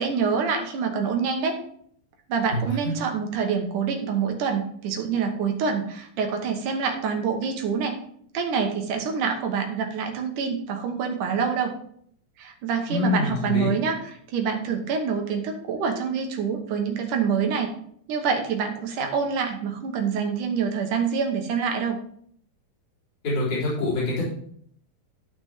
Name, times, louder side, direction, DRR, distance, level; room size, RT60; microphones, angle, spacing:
voice 1, 0.0-1.6 2.3-8.0 8.3-11.7 12.4-17.7 18.1-22.0, right 6 dB, 70° right, 3 dB, 2.4 m, -26 dB
voice 2, 2.5-2.9 12.9-13.7 23.2-24.2, left 2 dB, 40° left, -9 dB, 5.0 m, -25 dB
12.5 x 5.9 x 3.6 m, 0.63 s
omnidirectional pair, 4.4 m